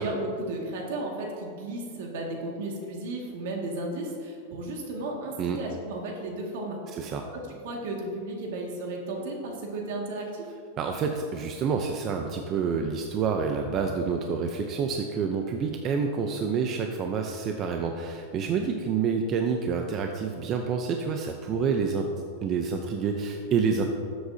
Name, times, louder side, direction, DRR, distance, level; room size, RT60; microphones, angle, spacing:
voice 1, 0.0-6.8 7.3-10.5, right 2 dB, 70° right, 0 dB, 2.0 m, -34 dB
voice 2, 6.9-7.2 10.8-22.1 22.4-23.8, right 5 dB, 30° right, 4 dB, 0.6 m, -28 dB
13.0 x 7.8 x 2.8 m, 2.3 s
supercardioid pair, 145°, 0 cm